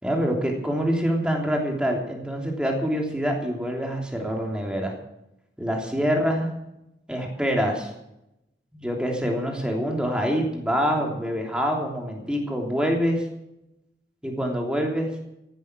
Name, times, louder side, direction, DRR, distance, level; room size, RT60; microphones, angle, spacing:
voice 1, 0.0-4.9 5.6-6.5 7.1-7.9 8.7-13.2 14.2-15.1, equal, 5° right, 0 dB, 3.2 m, -25 dB
15.0 x 12.0 x 6.2 m, 0.85 s
head